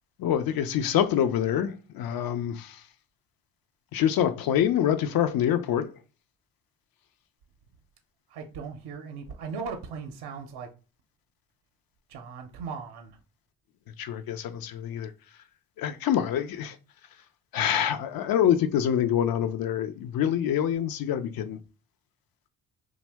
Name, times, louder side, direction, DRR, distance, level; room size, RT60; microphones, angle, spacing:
voice 1, 0.2-2.8 3.9-5.9 14.0-15.1 15.8-16.8 17.5-21.6, left 10 dB, 60° left, 0.5 m, -26 dB
voice 2, 8.3-10.7 12.1-13.2, right 5 dB, 65° right, 0.6 m, -38 dB
2.7 x 2.0 x 3.3 m
supercardioid pair, 45°, 40 cm